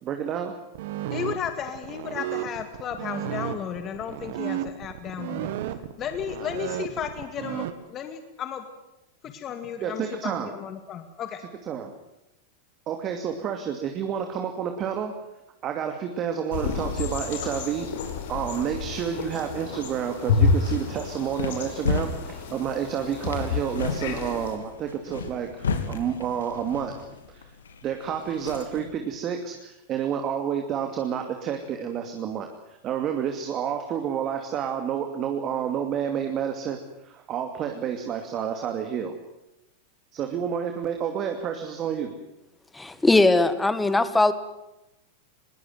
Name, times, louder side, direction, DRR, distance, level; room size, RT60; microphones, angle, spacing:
voice 1, 0.0-0.6 9.8-10.5 11.7-11.9 12.9-15.1 15.6-17.9 18.3-27.0 27.3-27.5 27.8-39.1 40.1-42.2, right 8 dB, 40° right, 5 dB, 2.6 m, -29 dB
sound 1, 0.7-7.7, right 12 dB, 65° right, 1.9 m, -33 dB
voice 2, 1.1-5.6 6.0-8.7 9.2-11.4, left 8 dB, 35° left, 8 dB, 2.2 m, -34 dB
sound 2, 16.5-24.5, left 5 dB, 70° left, 5.1 m, -29 dB
sound 3, 20.6-28.9, left 4 dB, 90° left, 2.9 m, -34 dB
voice 3, 42.7-44.3, left 2 dB, 10° left, 13 dB, 1.7 m, -20 dB
21.0 x 18.5 x 9.5 m, 0.93 s
hypercardioid pair, 105°, 0 cm